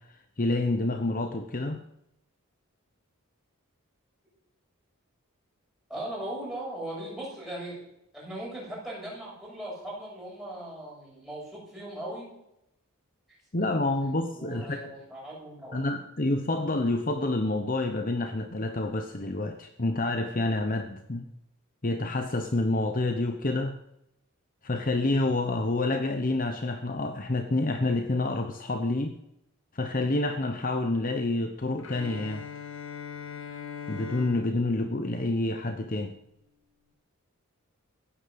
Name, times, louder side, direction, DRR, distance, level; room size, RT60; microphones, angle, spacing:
voice 1, 0.4-1.8 13.5-14.8 15.7-21.3 21.8-23.8 24.6-29.2 29.7-32.5 33.9-36.2, left 2 dB, 40° left, 7 dB, 1.0 m, -28 dB
voice 2, 5.9-7.8 8.1-12.3 14.3-15.9, right 1 dB, ahead, -5 dB, 7.6 m, -38 dB
Bowed string instrument, 31.8-35.9, left 7 dB, 60° left, 2.1 m, -41 dB
15.5 x 10.0 x 7.8 m, 0.82 s
head